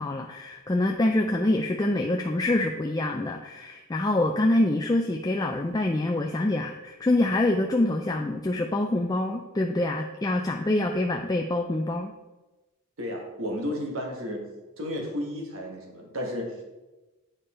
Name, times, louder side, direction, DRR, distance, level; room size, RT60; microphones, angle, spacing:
voice 1, 0.0-12.1, left 1 dB, 15° left, 3 dB, 0.3 m, -25 dB
voice 2, 13.0-14.4 14.8-16.6, left 1 dB, 65° right, 2 dB, 1.6 m, -33 dB
8.9 x 5.1 x 4.3 m, 1.1 s
head